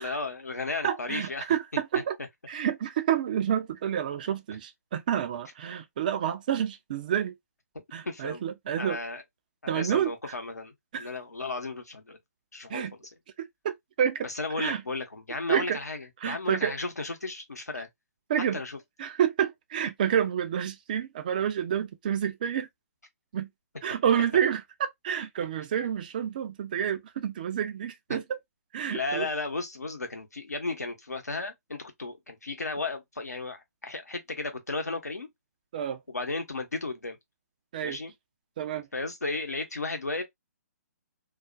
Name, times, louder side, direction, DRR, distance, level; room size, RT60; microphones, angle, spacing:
voice 1, 0.0-1.5 8.1-8.4 8.8-9.2 9.6-12.2 12.5-12.9 14.2-17.9 18.5-18.8 24.1-24.2 28.1-28.2 28.9-35.3 36.1-37.2 37.8-38.1 38.9-40.2, left 3 dB, 75° left, 0.8 m, -34 dB
voice 2, 0.8-2.2 2.5-7.3 7.9-9.0 9.7-10.1 10.9-11.1 12.7-12.9 13.4-14.3 14.6-14.8 15.5-15.8 16.2-16.7 18.3-18.6 19.0-22.7 23.3-23.5 23.8-28.2 28.7-29.3 35.7-36.0 37.7-38.0 38.6-38.9, right 9 dB, 30° right, 0.3 m, -29 dB
2.4 x 2.1 x 2.5 m
figure-of-eight pair, 130°, 9 cm